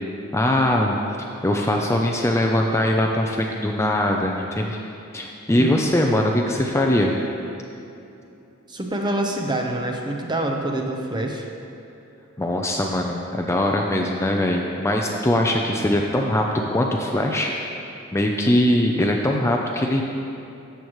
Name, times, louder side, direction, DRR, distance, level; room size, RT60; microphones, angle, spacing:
voice 1, 0.3-1.0 1.4-4.8 5.1-7.1 12.4-17.5 18.1-20.0, left 1 dB, 15° left, 1 dB, 0.5 m, -21 dB
voice 2, 5.5-5.9 8.7-11.5, right 1 dB, 20° right, 2 dB, 0.8 m, -26 dB
13.5 x 7.9 x 3.1 m, 2.8 s
head